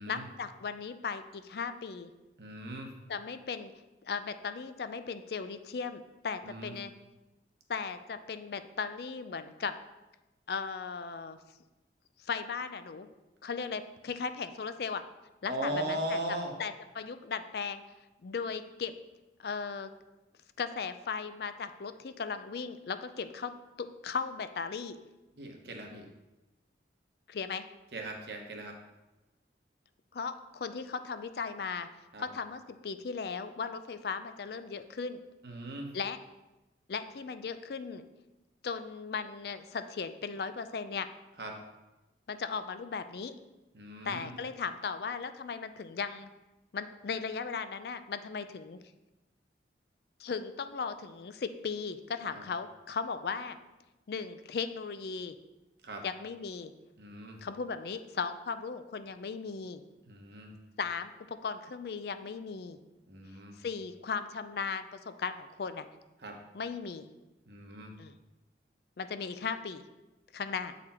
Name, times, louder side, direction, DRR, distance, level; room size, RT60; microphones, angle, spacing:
voice 1, 0.1-2.1 3.1-3.7 4.0-6.9 7.7-9.7 10.5-11.4 12.2-13.1 13.4-15.0 15.4-16.2 16.6-17.8 18.2-18.9 19.4-19.9 20.6-23.5 23.8-25.0 27.3-27.7 30.1-31.9 32.2-35.2 35.9-36.2 36.9-38.0 38.6-41.1 42.3-43.3 44.0-46.3 46.7-48.8 50.2-53.6 54.1-55.4 56.0-56.7 57.4-59.8 60.8-62.8 63.6-65.9 66.5-67.1 68.0-68.2 69.0-69.8 70.3-70.7, left 5 dB, 60° left, 10 dB, 0.4 m, -37 dB
voice 2, 2.4-2.9 6.4-6.7 15.5-16.5 25.4-26.1 27.9-28.7 32.1-32.2 35.4-35.9 41.4-41.5 43.7-44.3 52.3-52.4 55.8-56.0 57.0-57.4 60.0-60.5 63.1-63.6 66.2-66.4 67.5-67.9, right 1 dB, 65° right, 2 dB, 1.0 m, -38 dB
8.0 x 4.1 x 4.3 m, 1.0 s
head